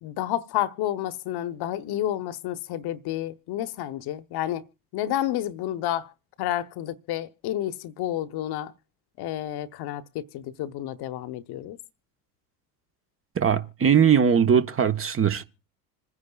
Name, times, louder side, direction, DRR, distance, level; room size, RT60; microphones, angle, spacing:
voice 1, 0.0-4.6 4.9-6.1 6.4-8.7 9.2-11.8, left 12 dB, 50° left, 1.0 m, -30 dB
voice 2, 13.3-15.4, right 7 dB, 25° right, 1.1 m, -20 dB
27.0 x 9.7 x 2.3 m
hypercardioid pair, 70°, 49 cm